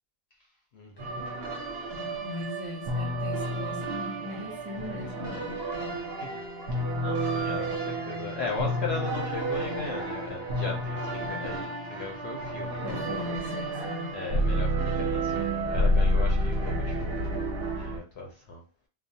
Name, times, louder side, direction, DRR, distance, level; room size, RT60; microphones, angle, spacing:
voice 1, 0.7-1.2 6.2-6.4 6.7-13.4 14.1-17.3 17.7-18.6, left 4 dB, 65° left, 0.7 m, -38 dB
sound 1, 1.0-18.0, right 1 dB, 55° right, 0.7 m, -30 dB
voice 2, 2.2-5.6 12.8-14.2, left 2 dB, 25° right, 0.4 m, -39 dB
2.3 x 2.0 x 2.6 m
omnidirectional pair, 1.4 m